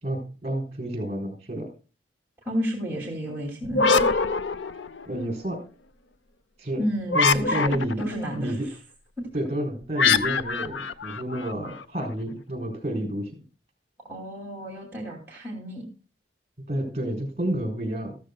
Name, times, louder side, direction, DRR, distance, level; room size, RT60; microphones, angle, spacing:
voice 1, 0.0-1.7 5.1-5.6 6.6-6.8 7.1-8.0 8.4-8.7 9.3-13.3 16.7-18.2, right 1 dB, 35° right, 3 dB, 3.8 m, -29 dB
voice 2, 2.5-4.0 6.8-8.6 9.2-9.3 14.1-15.8, equal, 15° right, -2 dB, 2.6 m, -31 dB
sound 1, 3.6-5.2 7.1-8.1 10.0-11.8, left 4 dB, 90° left, 0.7 m, -24 dB
14.0 x 13.5 x 2.3 m, 0.34 s
head